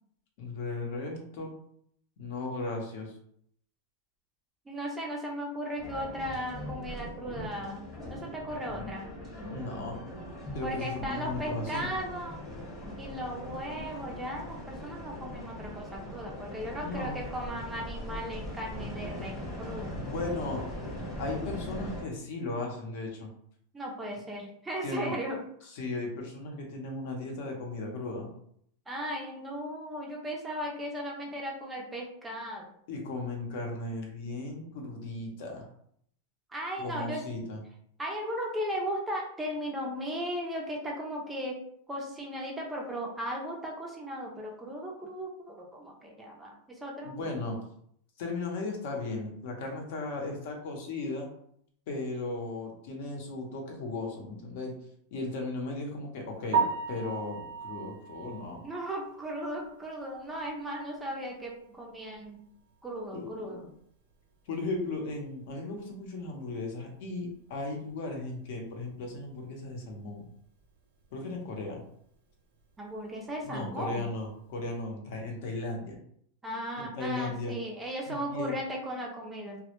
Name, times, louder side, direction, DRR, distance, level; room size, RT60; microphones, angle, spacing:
voice 1, 0.4-1.5 2.2-3.1 9.5-10.0 10.5-11.9 16.7-17.2 20.0-20.6 21.2-23.3 24.8-25.2 25.7-28.3 32.9-35.7 36.8-37.6 47.0-47.6 48.2-51.3 51.9-54.7 55.1-58.6 63.1-63.6 64.5-70.3 71.1-71.8 73.4-76.0 76.8-77.6 78.1-78.5, left 2 dB, 60° left, 1 dB, 0.7 m, -36 dB
voice 2, 4.7-7.8 8.1-9.1 10.6-12.4 13.0-20.0 23.7-25.4 28.9-32.7 36.5-37.2 38.0-41.6 41.9-47.3 58.6-62.5 62.8-63.6 72.8-74.1 76.4-79.6, equal, 10° right, -1 dB, 0.4 m, -36 dB
sound 1, 5.8-22.0, left 1 dB, 25° left, 0.9 m, -40 dB
Piano, 56.5-60.5 60.8-61.0 61.5-61.6 61.9-62.0 65.1-65.2 73.7-73.9, right 5 dB, 75° right, 0.7 m, -34 dB
2.1 x 2.0 x 2.9 m, 0.67 s
supercardioid pair, 150°, 0 cm